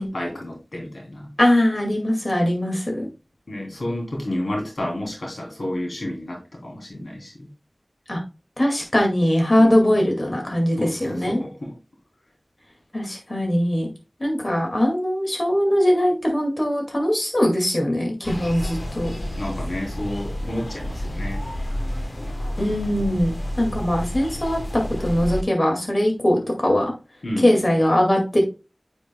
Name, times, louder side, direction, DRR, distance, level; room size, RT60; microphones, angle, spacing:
voice 1, 0.1-1.3 3.5-7.5 9.6-9.8 10.8-11.8 19.4-21.4 27.2-27.6, left 1 dB, 90° left, -1 dB, 3.1 m, -30 dB
voice 2, 1.4-3.1 8.1-8.2 8.6-11.4 12.9-13.9 14.2-19.1 22.6-24.6 25.0-26.9 27.4-28.4, left 1 dB, 40° left, 1 dB, 2.1 m, -21 dB
sound 1, 18.2-25.4, equal, 55° left, 1.1 m, -30 dB
9.5 x 5.2 x 2.2 m, 0.29 s
wide cardioid pair, 50°, 0 cm